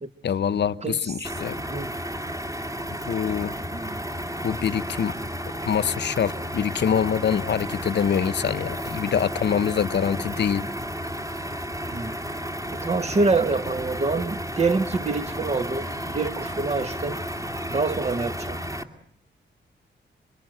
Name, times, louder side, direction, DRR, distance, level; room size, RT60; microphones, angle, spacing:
voice 1, 0.2-1.6 3.0-3.5 4.4-5.1 5.6-10.7, left 8 dB, 65° left, 1.0 m, -25 dB
voice 2, 0.8-1.1 1.7-1.9 3.7-4.0 11.9-12.3 12.7-17.2 17.7-18.6, right 3 dB, 35° right, 1.6 m, -26 dB
sound 1, 1.2-18.8, equal, 15° right, 2.5 m, -32 dB
27.5 x 24.5 x 8.0 m
wide cardioid pair, 115°, 20 cm